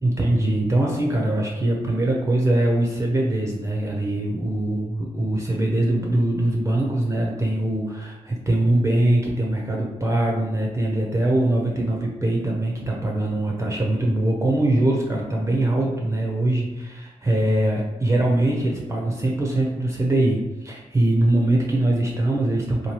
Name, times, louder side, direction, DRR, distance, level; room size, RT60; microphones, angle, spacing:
voice 1, 0.0-22.9, right 1 dB, 20° right, -2 dB, 0.6 m, -22 dB
2.9 x 2.2 x 3.0 m, 1.0 s
supercardioid pair, 50°, 13 cm